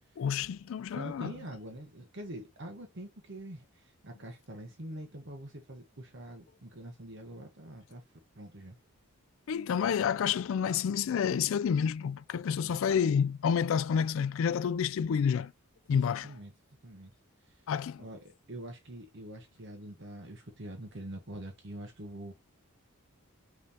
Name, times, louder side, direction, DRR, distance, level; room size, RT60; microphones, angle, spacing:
voice 1, 0.2-1.3 9.5-15.5 15.9-16.3 17.7-18.0, left 7 dB, 60° left, 0.3 m, -29 dB
voice 2, 0.8-8.0 8.3-8.8 12.6-12.8 15.9-16.5 16.8-17.1 17.5-17.6 18.0-22.3, right 1 dB, 55° right, 1.0 m, -45 dB
5.4 x 3.1 x 2.8 m
head